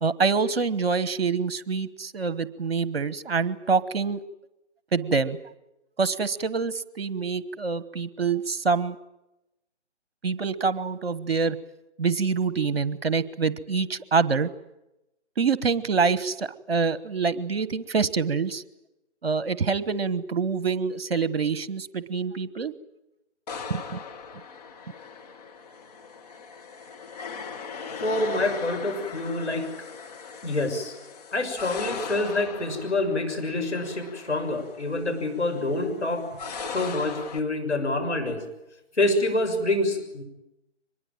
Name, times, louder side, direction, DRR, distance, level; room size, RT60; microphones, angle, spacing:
voice 1, 0.0-4.2 4.9-5.4 6.0-9.0 10.2-11.6 12.0-14.5 15.4-18.6 19.2-22.7 23.7-24.0, right 5 dB, 55° right, 17 dB, 1.3 m, -26 dB
sound 1, 23.5-37.4, left 5 dB, 35° left, 2.0 m, -39 dB
voice 2, 28.0-29.7 30.4-30.9 31.3-36.3 36.7-38.4 39.0-40.2, left 2 dB, 70° left, 5 dB, 6.6 m, -26 dB
24.5 x 21.5 x 9.1 m, 0.92 s
figure-of-eight pair, 145°, 35 cm